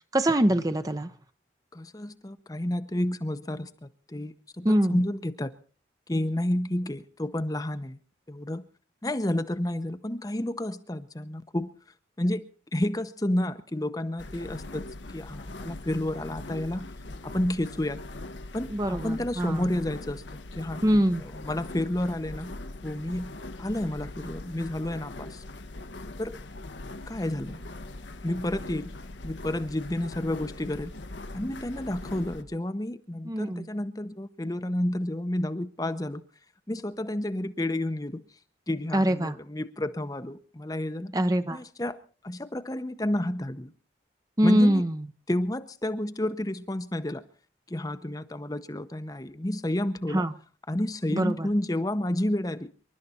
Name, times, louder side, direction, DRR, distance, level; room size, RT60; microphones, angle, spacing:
voice 1, 0.1-1.1 4.6-5.0 18.7-19.6 20.8-21.2 33.2-33.7 38.9-39.4 41.1-41.6 44.4-45.1 50.1-50.3 51.1-51.5, equal, 20° right, 10 dB, 0.7 m, -23 dB
voice 2, 1.7-5.5 6.1-8.0 8.3-8.6 9.0-11.7 12.2-12.5 12.7-14.8 15.1-16.9 17.2-18.0 18.5-22.5 22.8-23.3 23.6-25.4 26.2-26.4 27.1-27.6 28.2-28.9 29.2-30.9 31.3-36.2 36.7-38.2 38.7-41.1 41.5-42.0 42.2-43.7 44.4-44.8 45.3-47.2 47.7-50.2 50.7-52.7, left 1 dB, 20° left, 10 dB, 0.8 m, -30 dB
sound 1, 14.2-32.4, left 2 dB, 80° left, 1.2 m, -41 dB
27.0 x 12.0 x 4.3 m, 0.40 s
head